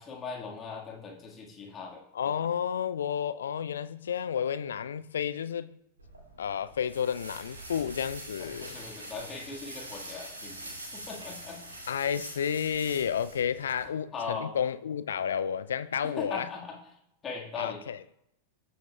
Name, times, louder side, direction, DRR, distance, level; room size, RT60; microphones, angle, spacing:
voice 1, 0.0-2.0 8.4-11.9 14.1-14.5 16.0-16.8 17.2-17.8, left 5 dB, 25° left, 1.7 m, -39 dB
voice 2, 2.1-5.8 6.4-8.8 11.9-16.5 17.6-18.0, left 8 dB, 65° left, 0.3 m, -31 dB
sound 1, 6.0-13.8, right 1 dB, 80° right, 2.2 m, -44 dB
14.0 x 7.0 x 2.3 m
figure-of-eight pair, 90°, 0 cm